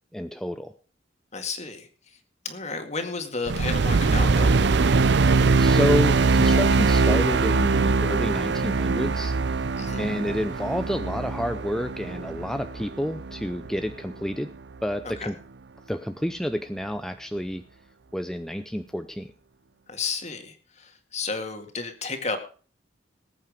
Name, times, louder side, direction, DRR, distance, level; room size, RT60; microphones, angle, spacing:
voice 1, 0.1-0.7 5.4-9.3 10.0-14.5 14.8-15.3 15.9-17.6 18.1-19.3, equal, 5° left, 8 dB, 0.6 m, -29 dB
voice 2, 1.3-1.9 2.4-4.5 9.8-10.1 15.2-15.3 19.9-22.4, left 4 dB, 40° left, 6 dB, 2.1 m, -32 dB
sound 1, 3.5-13.9, right 4 dB, 65° right, 0.5 m, -22 dB
19.0 x 8.6 x 5.0 m, 0.40 s
head